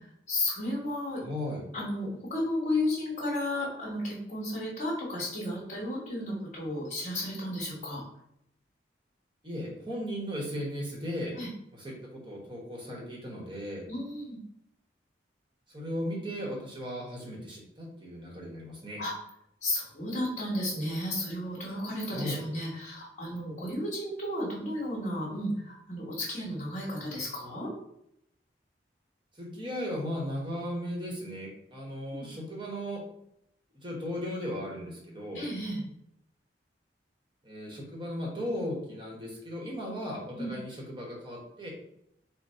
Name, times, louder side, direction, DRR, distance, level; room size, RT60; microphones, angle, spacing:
voice 1, 0.3-1.2 1.7-8.0 11.3-11.5 13.9-14.4 19.0-19.1 19.6-27.7 32.1-32.3 35.3-35.8 40.4-40.5, left 1 dB, 40° left, -8 dB, 1.3 m, -33 dB
voice 2, 1.2-1.7 9.4-11.3 11.7-13.9 15.7-19.0 22.1-22.4 29.4-33.0 33.8-35.4 37.4-41.7, equal, 25° right, -2 dB, 1.2 m, -36 dB
4.0 x 2.2 x 4.3 m, 0.77 s
head